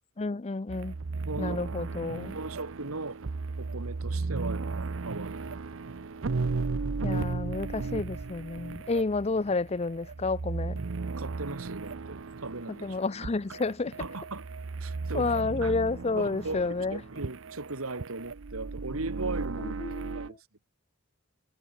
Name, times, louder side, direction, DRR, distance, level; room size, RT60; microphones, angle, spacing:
voice 1, 0.2-1.0 1.4-2.4 7.0-10.8 12.8-13.9 15.1-17.0 19.6-20.4, left 3 dB, 30° left, 0.5 m, -30 dB
sound 1, 0.7-20.3, right 4 dB, 65° right, 0.7 m, -35 dB
voice 2, 1.2-1.6 2.3-3.2 3.6-5.6 11.2-13.0 14.0-14.5 14.8-15.8 16.2-20.4, right 3 dB, 85° right, 2.3 m, -38 dB
head